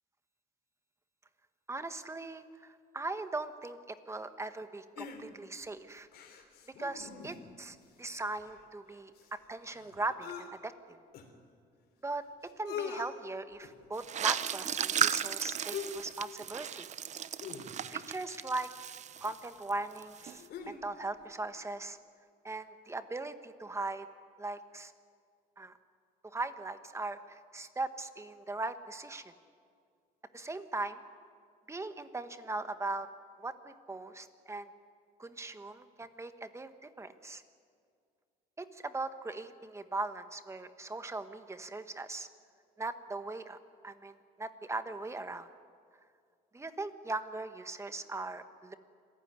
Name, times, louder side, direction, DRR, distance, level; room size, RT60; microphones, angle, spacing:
voice 1, 1.7-6.1 6.8-9.1 9.5-11.0 12.0-12.2 12.6-16.9 17.9-18.7 19.2-22.0 22.4-24.1 24.4-24.9 25.6-25.7 26.2-29.2 30.3-31.0 31.7-33.1 33.4-34.7 35.2-37.4 38.6-42.3 42.8-43.6 43.8-45.5 46.5-48.7, right 2 dB, 15° right, 10 dB, 1.4 m, -39 dB
sound 1, 5.0-5.6 6.1-7.6 7.9-8.0 8.2-10.5 11.1-11.2 12.1-12.2 12.5-13.1 13.6-13.9 15.7-16.1 16.4-16.6 17.4-18.1 19.2-19.3 19.9-20.9 21.2-21.3, left 6 dB, 70° left, 3.4 m, -44 dB
sound 2, 14.0-19.7 20.0-20.4, right 9 dB, 45° right, 0.7 m, -35 dB
26.5 x 15.5 x 9.7 m, 2.2 s
cardioid pair, 110°, 17 cm